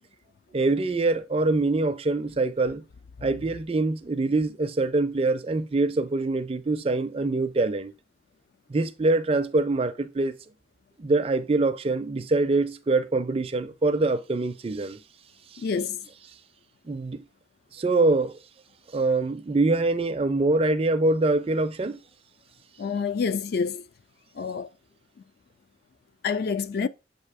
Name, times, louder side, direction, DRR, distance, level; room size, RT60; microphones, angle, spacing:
voice 1, 0.5-2.8 3.2-7.9 8.7-10.4 11.0-15.0 15.5-15.6 16.9-17.2 17.7-18.3 18.9-22.0, right 2 dB, 30° right, 0.4 m, -24 dB
voice 2, 15.6-16.0 22.8-23.8 24.4-24.7 26.2-26.9, left 5 dB, 55° left, 0.3 m, -27 dB
7.5 x 2.6 x 4.8 m
head